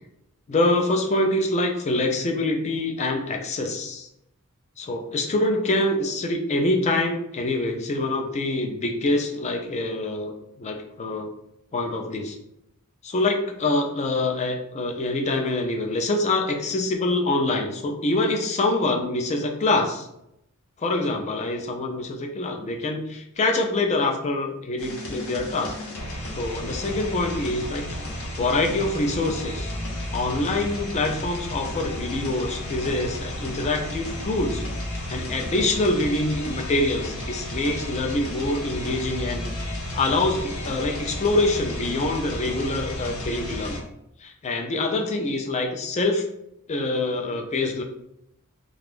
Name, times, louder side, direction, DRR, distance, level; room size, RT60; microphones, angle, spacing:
voice 1, 0.5-4.1 4.8-11.3 11.7-12.4 13.0-20.1 20.8-25.7 26.4-27.8 28.4-29.7 30.1-34.6 35.1-39.4 39.9-43.8 44.2-46.2 46.7-47.8, left 2 dB, 30° left, 3 dB, 0.4 m, -25 dB
sound 1, 24.8-43.8, left 1 dB, 65° left, 0.7 m, -33 dB
2.5 x 2.3 x 3.4 m, 0.80 s
head